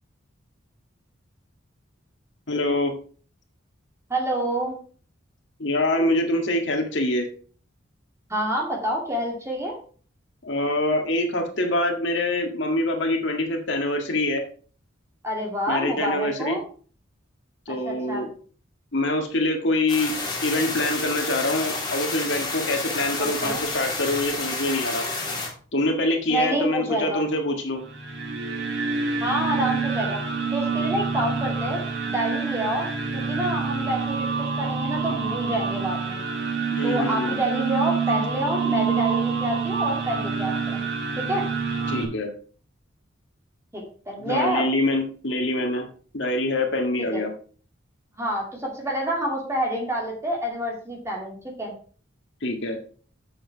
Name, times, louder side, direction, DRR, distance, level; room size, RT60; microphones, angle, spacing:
voice 1, 2.5-2.9 5.6-7.3 10.4-14.4 15.7-16.6 17.7-18.3 18.9-20.1 20.4-25.0 25.7-27.8 36.7-37.4 41.9-42.3 44.2-45.9 46.1-47.3 52.4-52.8, left 1 dB, 65° left, 3 dB, 1.8 m, -25 dB
voice 2, 4.1-4.8 8.3-9.8 15.2-16.6 17.8-18.3 23.2-23.6 26.3-27.2 29.2-30.2 30.5-32.9 33.1-36.2 36.8-40.8 41.2-41.5 43.7-44.6 47.0-47.2 48.2-51.7, right 1 dB, 15° right, -1 dB, 2.5 m, -27 dB
sound 1, 19.9-25.5, left 3 dB, 20° left, 3.1 m, -30 dB
sound 2, 27.8-42.0, right 5 dB, 55° right, 2.0 m, -27 dB
7.7 x 7.2 x 4.6 m, 0.42 s
head